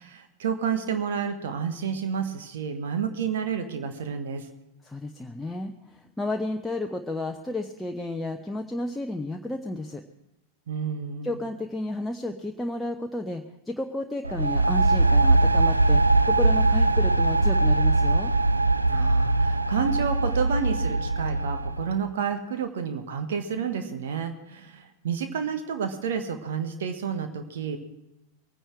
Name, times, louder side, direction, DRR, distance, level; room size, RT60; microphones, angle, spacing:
voice 1, 0.0-4.5 10.7-11.3 18.9-27.8, right 7 dB, 60° right, 7 dB, 1.4 m, -30 dB
voice 2, 4.8-10.0 11.2-18.3, left 2 dB, 5° left, 3 dB, 0.8 m, -32 dB
sound 1, 14.2-22.0, right 2 dB, 85° right, 0.4 m, -21 dB
22.5 x 10.0 x 4.5 m, 0.92 s
figure-of-eight pair, 90°, 0 cm